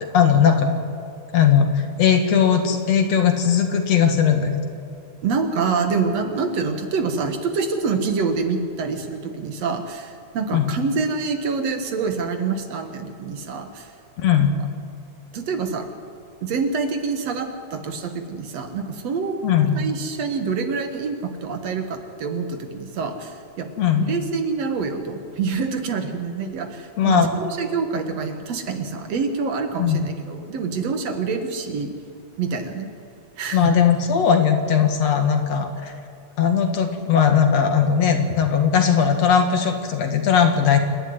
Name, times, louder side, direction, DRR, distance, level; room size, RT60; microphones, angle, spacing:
voice 1, 0.0-0.7 1.3-4.7 10.5-10.7 14.2-14.5 19.4-19.8 23.8-24.1 27.0-27.3 29.8-30.0 33.5-35.9 36.4-40.8, left 7 dB, 65° left, 5 dB, 2.9 m, -18 dB
voice 2, 5.2-13.9 15.3-15.9 16.4-19.3 19.8-23.7 24.1-31.9 32.4-32.9 33.4-33.7, right 5 dB, 65° right, 6 dB, 2.6 m, -26 dB
27.5 x 11.5 x 9.6 m, 2.6 s
omnidirectional pair, 3.3 m